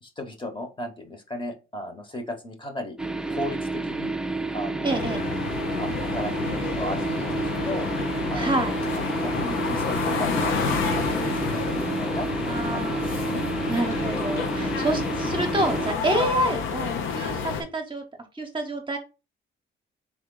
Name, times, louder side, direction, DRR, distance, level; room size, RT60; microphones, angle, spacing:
voice 1, 0.0-3.0 3.3-4.1 4.5-5.0 5.7-7.9 8.3-8.6 8.9-10.5 10.9-13.0, left 1 dB, 25° left, 6 dB, 1.2 m, -35 dB
sound 1, 3.0-15.9, right 3 dB, 5° right, 0.5 m, -30 dB
voice 2, 4.8-5.2 8.3-8.7 12.4-13.4 13.7-18.0 18.3-19.0, right 1 dB, 25° right, 4 dB, 0.9 m, -28 dB
sound 2, 4.9-17.6, left 6 dB, 80° left, 0.8 m, -29 dB
3.8 x 3.2 x 3.8 m, 0.30 s
cardioid pair, 90°, 20 cm